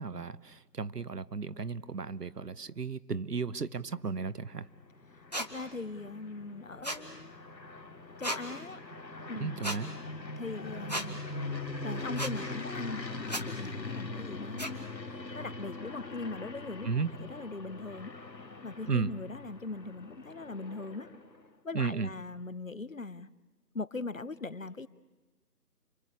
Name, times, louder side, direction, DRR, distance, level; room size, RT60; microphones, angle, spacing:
voice 1, 0.0-4.7 9.4-9.9 16.8-17.1 18.9-19.1 21.7-22.1, right 5 dB, 70° right, 17 dB, 1.1 m, -34 dB
sound 1, 4.4-21.5, left 2 dB, 90° left, 2.9 m, -42 dB
sound 2, 5.3-5.5 6.8-7.0 8.2-8.4 9.6-9.8 10.9-11.1 12.2-12.3 13.3-13.4 14.6-14.7, equal, 25° left, 1.2 m, -34 dB
voice 2, 5.4-7.3 8.2-8.8 9.3-9.7 10.4-11.2 11.8-18.1 18.6-21.1 21.6-23.3 23.7-24.9, left 3 dB, 50° left, 17 dB, 1.0 m, -40 dB
30.0 x 23.5 x 8.3 m, 1.2 s
figure-of-eight pair, 175°, 49 cm